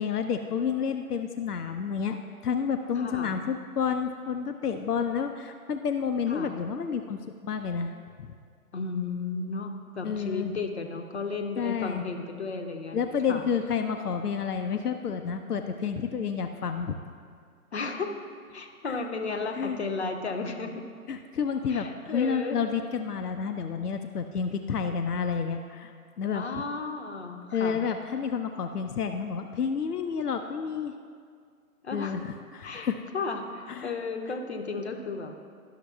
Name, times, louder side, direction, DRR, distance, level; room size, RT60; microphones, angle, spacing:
voice 1, 0.0-2.2 2.4-7.9 10.0-10.5 11.6-12.0 12.9-17.0 18.8-19.0 19.5-19.8 21.1-26.5 27.5-30.9 31.9-33.0 33.7-33.9, left 6 dB, 90° left, 6 dB, 0.6 m, -30 dB
voice 2, 3.0-3.3 6.3-6.5 8.7-13.0 13.3-13.4 17.7-18.1 18.5-20.8 21.7-22.6 26.3-27.8 31.8-32.2 32.6-32.9 33.1-35.5, left 4 dB, 45° left, 4 dB, 0.7 m, -34 dB
12.0 x 6.4 x 2.3 m, 2.1 s
figure-of-eight pair, 140°, 45 cm